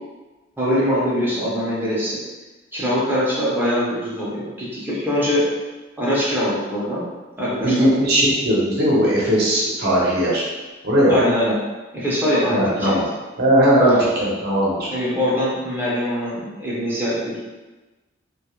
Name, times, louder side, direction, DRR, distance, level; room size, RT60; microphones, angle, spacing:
voice 1, 0.6-2.2 2.7-5.4 6.0-7.1 7.4-7.9 11.1-11.5 11.9-13.0 13.8-14.1 14.9-17.4, equal, 10° right, -8 dB, 0.5 m, -22 dB
voice 2, 7.6-10.4 10.8-11.2 12.5-13.0 13.4-14.9, equal, 50° right, -6 dB, 0.7 m, -18 dB
2.3 x 2.0 x 2.8 m, 1.2 s
head